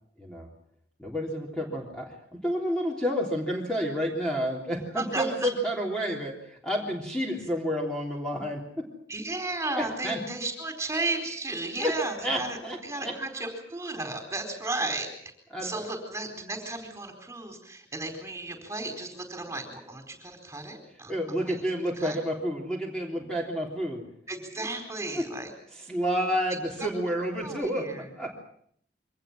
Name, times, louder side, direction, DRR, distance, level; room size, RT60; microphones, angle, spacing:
voice 1, 1.0-8.9 9.7-10.2 11.8-13.1 15.5-15.9 21.1-24.0 24.6-24.7 25.1-25.3 25.9-28.4, equal, 5° left, -2 dB, 3.5 m, -30 dB
voice 2, 4.9-5.5 9.1-12.6 12.8-15.1 15.6-21.6 22.0-22.2 24.3-25.5 26.5-26.9 27.4-28.1, right 2 dB, 15° right, 5 dB, 4.3 m, -34 dB
24.5 x 19.0 x 7.5 m, 0.66 s
head